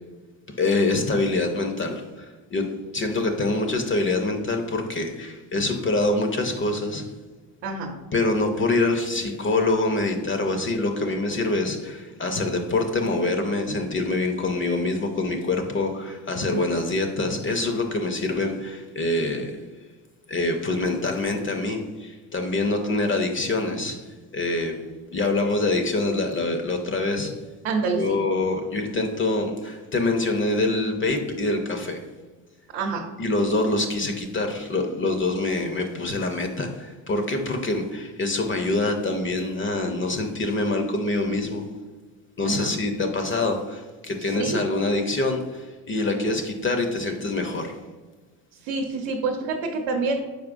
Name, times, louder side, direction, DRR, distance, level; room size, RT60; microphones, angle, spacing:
voice 1, 0.6-7.1 8.1-19.6 20.3-24.8 25.1-27.3 28.0-32.0 33.2-41.7 42.4-47.8, left 2 dB, 30° left, 5 dB, 0.5 m, -25 dB
voice 2, 7.6-7.9 16.5-16.7 27.6-28.2 32.7-33.0 42.4-42.7 44.2-44.6 48.6-50.2, right 4 dB, 70° right, 1 dB, 0.8 m, -27 dB
4.9 x 4.3 x 2.5 m, 1.3 s
supercardioid pair, 80°, 45 cm